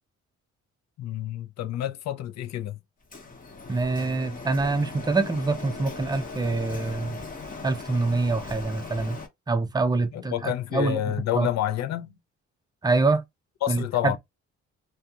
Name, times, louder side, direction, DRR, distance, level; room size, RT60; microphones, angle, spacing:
voice 1, 1.0-2.8 10.1-12.2 13.6-14.2, left 12 dB, 60° left, 0.5 m, -29 dB
Printer, 3.1-9.3, left 3 dB, 30° left, 0.9 m, -39 dB
voice 2, 3.7-7.2 7.6-9.2 9.5-11.5 12.8-13.2 13.7-14.2, right 3 dB, 15° right, 0.5 m, -25 dB
2.4 x 2.4 x 2.7 m
cardioid pair, 90°, 30 cm